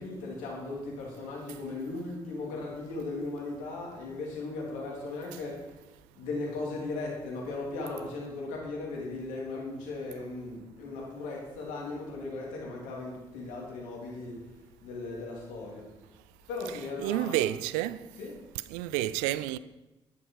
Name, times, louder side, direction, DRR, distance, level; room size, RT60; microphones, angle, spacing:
voice 1, 0.0-5.8 6.1-14.5 14.8-15.9 16.5-17.6 18.1-18.4, left 3 dB, 80° left, 3.2 m, -37 dB
voice 2, 17.0-18.1 18.7-19.6, right 14 dB, 85° right, 0.4 m, -29 dB
11.0 x 10.5 x 4.8 m
hypercardioid pair, 45°, 13 cm